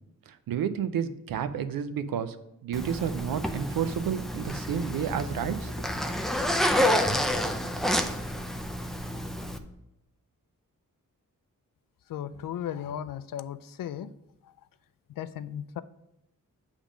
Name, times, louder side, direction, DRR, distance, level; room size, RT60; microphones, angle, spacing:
voice 1, 0.3-2.4 2.6-5.9 6.5-6.6, right 8 dB, 85° right, 11 dB, 0.6 m, -31 dB
Zipper (clothing), 2.7-9.6, equal, ahead, 0.4 m, -29 dB
voice 2, 12.1-14.1 15.2-15.8, left 10 dB, 75° left, 14 dB, 0.5 m, -35 dB
7.2 x 3.5 x 5.0 m, 0.86 s
wide cardioid pair, 110°, 34 cm